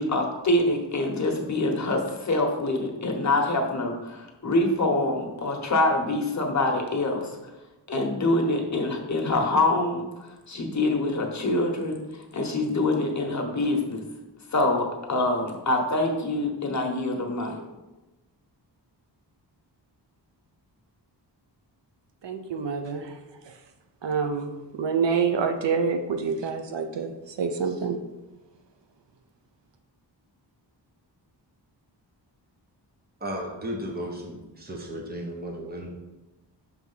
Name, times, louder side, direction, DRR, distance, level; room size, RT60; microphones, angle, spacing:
voice 1, 0.0-7.3 7.9-10.0 10.5-12.0 12.3-14.0 14.5-17.5, left 2 dB, 40° left, 2 dB, 1.1 m, -25 dB
voice 2, 22.2-23.2 24.0-27.1 27.4-28.0, right 5 dB, 75° right, 6 dB, 0.7 m, -27 dB
voice 3, 33.2-35.9, equal, 20° right, 1 dB, 0.9 m, -34 dB
6.3 x 3.5 x 5.5 m, 1.1 s
wide cardioid pair, 155°, 44 cm